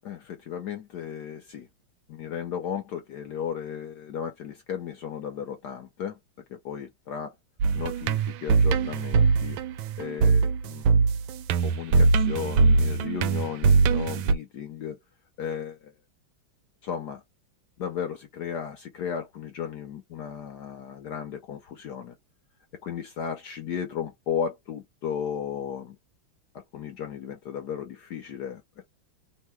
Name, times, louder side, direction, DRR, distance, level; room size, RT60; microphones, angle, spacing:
voice 1, 0.0-1.7 2.1-6.2 6.5-7.3 7.7-10.9 11.6-15.0 15.4-15.9 16.8-17.2 17.8-22.2 22.8-26.0 26.5-28.9, left 8 dB, 65° left, 1.1 m, -35 dB
sound 1, 7.6-14.3, right 4 dB, 80° right, 1.3 m, -22 dB
3.6 x 2.2 x 4.4 m
omnidirectional pair, 2.2 m